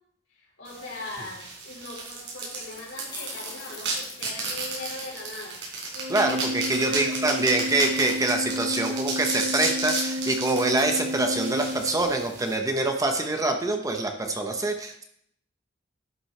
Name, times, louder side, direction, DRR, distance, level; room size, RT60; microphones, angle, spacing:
voice 1, 0.3-5.6 6.7-7.5, left 2 dB, 75° left, -3 dB, 4.2 m, -40 dB
sound 1, 0.7-12.5, right 3 dB, 75° right, 4.0 m, -33 dB
sound 2, 2.6-5.1, left 4 dB, 20° left, 1.4 m, -43 dB
Organ, 5.9-12.5, left 1 dB, 50° right, 0.9 m, -32 dB
voice 2, 6.1-15.0, right 2 dB, 20° right, 4 dB, 1.0 m, -25 dB
11.5 x 9.5 x 3.3 m, 0.70 s
head